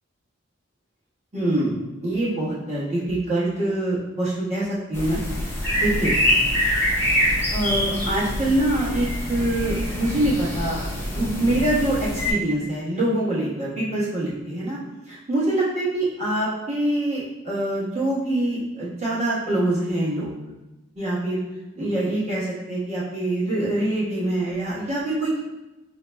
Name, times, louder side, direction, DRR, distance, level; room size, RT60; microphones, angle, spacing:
voice 1, 1.3-5.2 5.8-6.1 7.1-10.8 11.1-14.8 15.1-20.3 20.9-21.4 21.8-25.4, right 1 dB, 35° right, -8 dB, 1.2 m, -25 dB
sound 1, 4.9-12.3, equal, 10° left, 0.7 m, -25 dB
5.1 x 2.8 x 2.2 m, 1.0 s
head